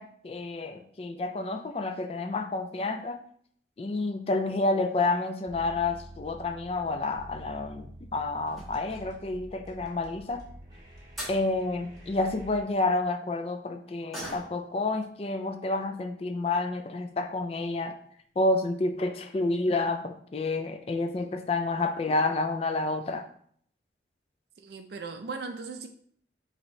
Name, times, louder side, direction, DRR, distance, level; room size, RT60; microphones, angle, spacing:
voice 1, 0.0-3.2 3.8-10.4 11.3-18.0 18.4-23.3, left 2 dB, 35° left, 6 dB, 0.3 m, -29 dB
sound 1, 5.5-12.6, right 1 dB, 20° right, 1.1 m, -48 dB
sound 2, 8.4-9.3 10.8-10.9 11.2-11.4 14.1-14.8 15.1-15.2 15.7-15.8 16.6-16.7 17.0-17.1 17.5-17.8 18.1-18.2 18.5-18.6, equal, ahead, 1.8 m, -42 dB
voice 2, 24.6-25.9, right 4 dB, 60° right, 5 dB, 0.4 m, -38 dB
5.9 x 2.7 x 3.1 m, 0.62 s
head